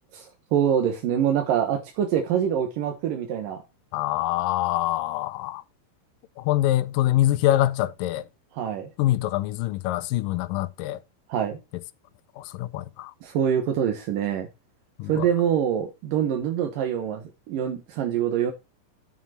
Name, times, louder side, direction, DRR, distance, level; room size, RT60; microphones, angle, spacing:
voice 1, 0.1-3.6 8.5-8.9 11.3-11.6 13.2-14.5 15.1-18.5, right 9 dB, 85° right, 3.0 m, -25 dB
voice 2, 3.9-5.6 6.4-8.3 9.0-11.0 12.4-13.1 15.0-15.3, left 14 dB, 90° left, 2.4 m, -25 dB
11.0 x 7.3 x 4.3 m
omnidirectional pair, 3.8 m